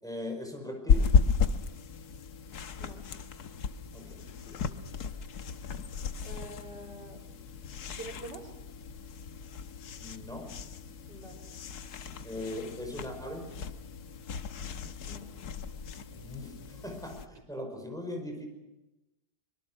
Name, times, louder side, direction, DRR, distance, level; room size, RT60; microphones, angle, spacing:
voice 1, 0.0-1.1 3.9-4.6 10.0-10.5 12.2-13.5 16.1-18.5, left 1 dB, ahead, 3 dB, 5.1 m, -40 dB
sound 1, 0.9-17.3, left 5 dB, 70° left, 1.5 m, -33 dB
voice 2, 6.2-7.2 8.0-8.5 11.1-11.4 15.0-15.3, right 1 dB, 85° right, 0 dB, 4.5 m, -45 dB
24.5 x 23.0 x 6.4 m, 0.97 s
omnidirectional pair, 1.8 m